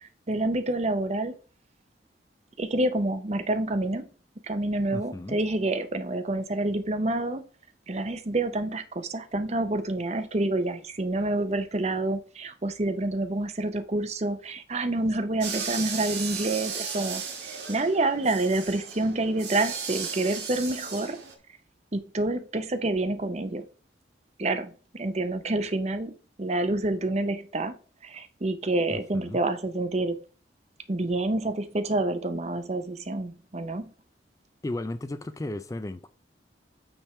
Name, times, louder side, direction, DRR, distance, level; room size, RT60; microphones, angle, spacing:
voice 1, 0.0-1.3 2.6-4.1 4.4-7.4 7.9-17.2 17.5-21.2 21.9-23.6 24.4-27.7 28.0-30.2 30.9-33.9, right 2 dB, 35° right, 0.7 m, -28 dB
voice 2, 4.9-5.4 28.9-29.4 34.6-36.1, left 1 dB, 20° left, 0.3 m, -35 dB
sound 1, 15.4-21.4, right 6 dB, 70° right, 1.6 m, -35 dB
8.8 x 3.5 x 4.2 m
head